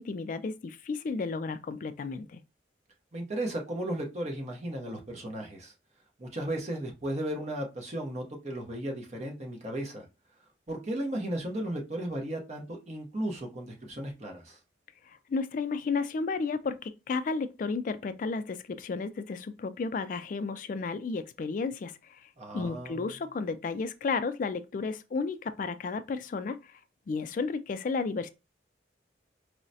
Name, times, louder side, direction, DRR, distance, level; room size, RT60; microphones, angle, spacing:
voice 1, 0.0-2.4 15.1-26.8 27.1-28.3, left 4 dB, 45° left, 0.3 m, -33 dB
voice 2, 3.1-5.7 6.2-10.1 10.7-14.6 22.4-23.1, right 1 dB, 40° right, 0.8 m, -35 dB
4.6 x 2.1 x 2.6 m
head